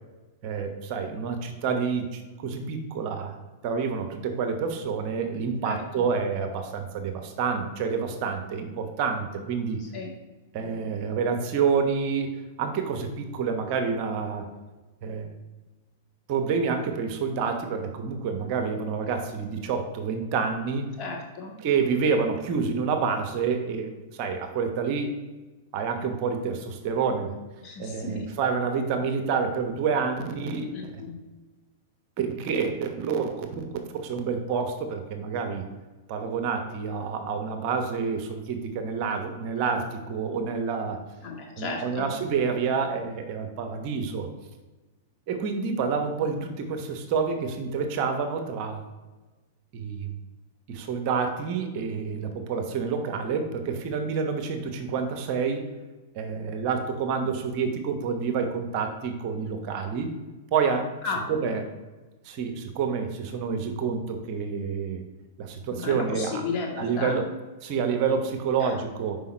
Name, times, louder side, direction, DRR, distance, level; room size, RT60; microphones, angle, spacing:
voice 1, 0.4-3.4 3.6-9.8 10.5-14.4 15.0-15.3 16.3-20.9 21.6-23.9 24.2-25.1 25.7-27.3 27.8-30.9 32.2-35.6 36.1-41.0 41.6-44.3 45.3-48.8 49.7-50.1 50.7-55.6 56.1-60.1 60.5-60.9 61.3-61.6 62.2-65.0 65.4-66.4 66.8-67.3 67.6-69.2, right 5 dB, 50° right, 5 dB, 1.0 m, -28 dB
voice 2, 5.6-6.0 9.8-10.1 21.0-21.5 27.6-28.3 30.7-31.2 41.2-42.1 61.0-61.2 65.7-67.1 68.6-68.7, left 4 dB, 35° left, -1 dB, 1.9 m, -34 dB
5.5 x 5.1 x 4.4 m, 1.2 s
hypercardioid pair, 105°, 0 cm